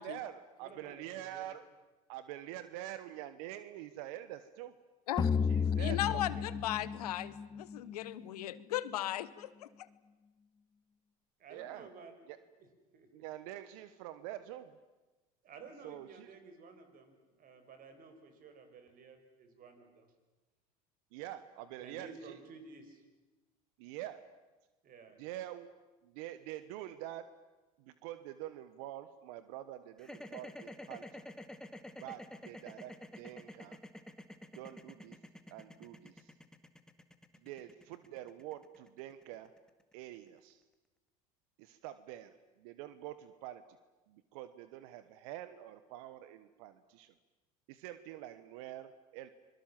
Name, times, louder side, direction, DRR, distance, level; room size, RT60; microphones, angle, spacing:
voice 1, 0.0-1.6 2.1-4.7 5.5-6.3 11.5-11.9 12.3-12.4 13.1-14.7 15.8-16.3 21.1-22.4 23.8-24.2 25.2-25.7 26.0-27.2 27.8-31.2 31.9-33.8 34.5-35.2 35.5-36.3 37.4-39.5 39.9-40.6 41.6-43.6 44.1-47.1 47.7-49.3, right 13 dB, 70° right, 13 dB, 1.1 m, -46 dB
voice 2, 0.6-1.5 11.4-12.1 12.6-12.7 12.9-13.1 15.4-20.1 21.8-23.0 24.8-25.2, right 4 dB, 45° right, 7 dB, 5.2 m, -53 dB
sound 1, 5.2-8.4, left 6 dB, 20° left, 1.2 m, -33 dB
voice 3, 5.8-9.7, left 13 dB, 85° left, 17 dB, 1.1 m, -37 dB
sound 2, 30.0-40.2, left 1 dB, 5° left, 1.9 m, -49 dB
26.0 x 22.0 x 7.5 m, 1.2 s
hypercardioid pair, 85°, 19 cm